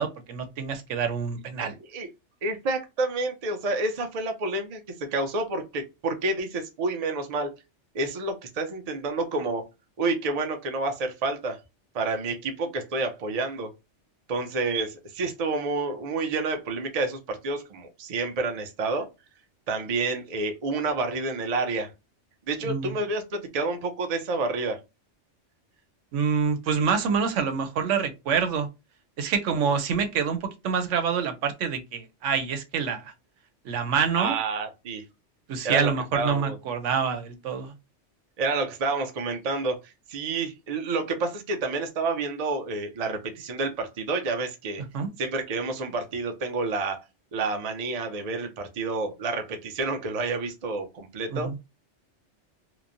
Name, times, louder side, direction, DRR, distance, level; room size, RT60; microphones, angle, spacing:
voice 1, 0.0-1.7 22.6-23.0 26.1-28.7 29.2-33.1 33.6-34.4 35.5-37.7 44.9-45.1 51.3-51.5, right 6 dB, 85° right, 1.0 m, -26 dB
voice 2, 1.6-2.1 2.4-7.5 7.9-9.7 10.0-11.6 11.9-13.7 14.3-19.1 19.7-21.9 22.5-24.8 34.2-35.0 35.6-36.6 38.4-44.8 45.2-47.0 47.3-51.5, right 3 dB, 45° right, 0.6 m, -29 dB
3.0 x 2.1 x 2.5 m
omnidirectional pair, 1.2 m